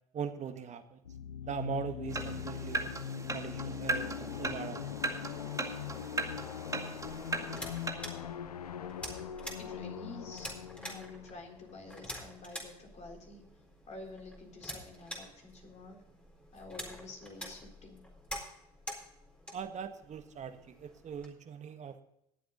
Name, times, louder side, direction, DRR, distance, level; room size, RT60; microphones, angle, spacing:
voice 1, 0.1-1.0 1.4-2.9 3.3-4.9 19.5-22.0, right 7 dB, 40° right, 9 dB, 1.5 m, -40 dB
sound 1, 1.0-12.6, left 8 dB, 90° left, 0.7 m, -41 dB
sound 2, 2.1-7.9, right 2 dB, 15° right, 2.0 m, -38 dB
sound 3, 7.0-21.3, equal, 5° left, 4.1 m, -47 dB
voice 2, 9.6-10.6 10.8-13.4 13.9-16.0 16.5-18.0, left 2 dB, 35° left, 1 dB, 3.9 m, -49 dB
19.5 x 7.7 x 3.9 m, 0.79 s
hypercardioid pair, 70°, 19 cm